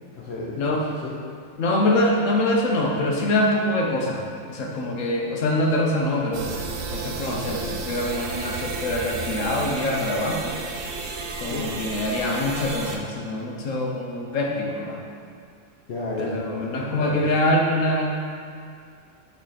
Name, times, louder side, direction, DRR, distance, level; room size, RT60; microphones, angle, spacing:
voice 1, 0.1-1.1 11.5-11.8 15.9-17.2, left 2 dB, 60° left, -5 dB, 1.0 m, -33 dB
voice 2, 1.6-6.5 6.9-10.6 11.4-15.0 16.2-18.1, left 1 dB, 85° left, 0 dB, 1.2 m, -24 dB
sound 1, 6.3-13.0, right 3 dB, 85° right, 1.1 m, -32 dB
8.6 x 3.4 x 4.1 m, 2.3 s
omnidirectional pair, 1.3 m